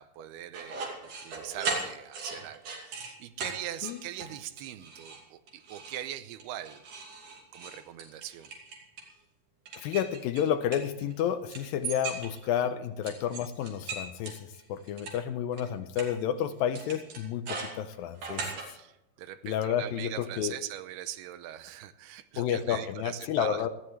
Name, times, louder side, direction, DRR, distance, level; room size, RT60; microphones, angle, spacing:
voice 1, 0.0-6.9 7.5-8.5 12.6-12.7 18.7-23.7, right 12 dB, 85° right, 12 dB, 2.8 m, -41 dB
sound 1, 0.5-3.1 3.4-3.5 3.8-4.3 4.6-5.2 5.5-6.0 6.4-9.1 9.7-11.2 11.5-12.6 13.0-15.1 15.6-15.7 16.0-16.1 16.7-18.7, right 4 dB, 60° right, 4.1 m, -38 dB
voice 2, 9.8-18.5 19.4-20.6 22.4-23.7, left 9 dB, 80° left, 10 dB, 2.3 m, -31 dB
19.5 x 14.5 x 3.3 m, 0.91 s
omnidirectional pair, 4.5 m